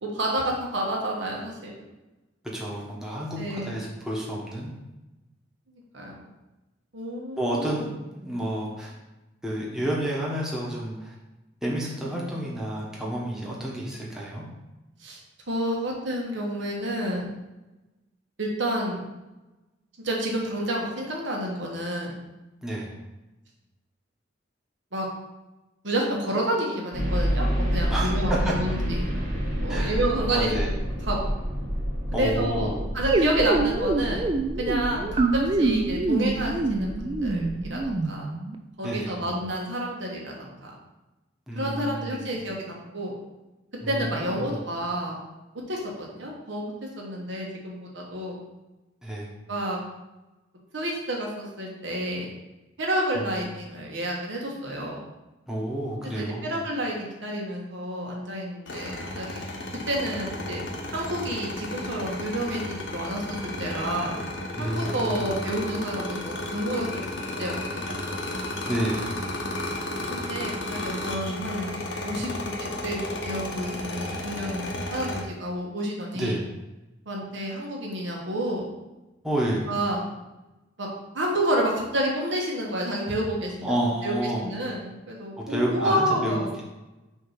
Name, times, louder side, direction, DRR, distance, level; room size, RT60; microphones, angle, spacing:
voice 1, 0.0-1.8 3.4-3.8 5.7-6.2 6.9-7.8 15.0-15.2 15.5-17.3 18.4-19.0 20.0-22.1 24.9-25.1 25.8-27.5 27.7-29.1 29.6-30.7 31.0-31.4 32.1-32.7 32.9-34.2 34.6-38.3 38.8-40.7 41.5-43.2 43.9-45.2 45.7-48.4 49.5-49.8 50.7-52.3 52.8-55.1 56.1-59.4 59.9-60.6 60.9-64.1 64.6-67.0 67.4-67.9 70.1-71.7 72.0-72.3 72.6-76.4 77.1-78.7 79.7-80.0 80.8-80.9 81.1-83.7 84.0-86.5, right 1 dB, 70° right, -2 dB, 1.4 m, -29 dB
voice 2, 2.5-4.7 7.4-8.9 9.4-11.1 11.6-14.5 22.6-22.9 27.9-28.5 29.7-30.0 30.3-30.7 32.1-32.8 38.8-39.2 41.5-42.2 43.8-44.6 49.0-49.3 53.3-53.4 55.5-56.4 64.5-65.2 68.7-69.1 76.1-76.4 79.2-79.6 83.6-84.5 85.5-86.6, right 1 dB, 5° right, -5 dB, 1.1 m, -30 dB
sound 1, 26.9-37.8, equal, 45° right, 1.6 m, -29 dB
sound 2, 33.1-38.6, right 2 dB, 25° right, 0.4 m, -25 dB
sound 3, 58.7-75.2, left 1 dB, 90° left, 1.1 m, -33 dB
6.4 x 2.8 x 5.7 m, 1.0 s
head